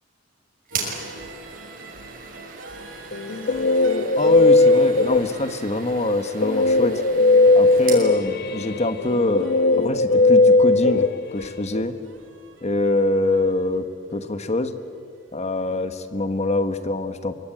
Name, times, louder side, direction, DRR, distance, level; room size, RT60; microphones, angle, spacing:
sound 1, 0.7-8.1, right 5 dB, 50° right, 6.1 m, -37 dB
sound 2, 0.7-16.5, right 2 dB, 75° right, 2.4 m, -45 dB
Guitar, 3.1-5.6 6.4-11.8, left 3 dB, 55° left, 0.7 m, -18 dB
voice 1, 4.2-7.0 7.5-12.0 12.6-14.7 15.3-17.3, left 2 dB, 35° left, 10 dB, 1.4 m, -24 dB
25.5 x 23.0 x 8.9 m, 2.4 s
head